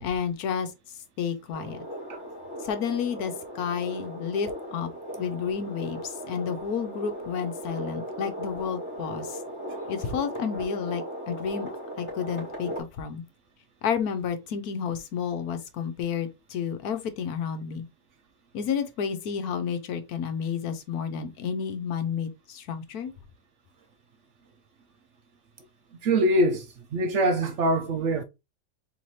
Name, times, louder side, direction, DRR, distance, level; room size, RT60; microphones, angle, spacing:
voice 1, 0.0-0.7 1.2-1.8 2.6-4.9 5.2-9.4 9.9-11.7 12.0-13.2 13.8-17.8 18.5-23.1, left 7 dB, 80° left, 1.2 m, -31 dB
sound 1, 1.5-12.8, equal, 20° left, 2.2 m, -37 dB
voice 2, 26.0-28.2, right 1 dB, 65° right, 0.8 m, -24 dB
4.1 x 3.3 x 3.1 m
omnidirectional pair, 1.6 m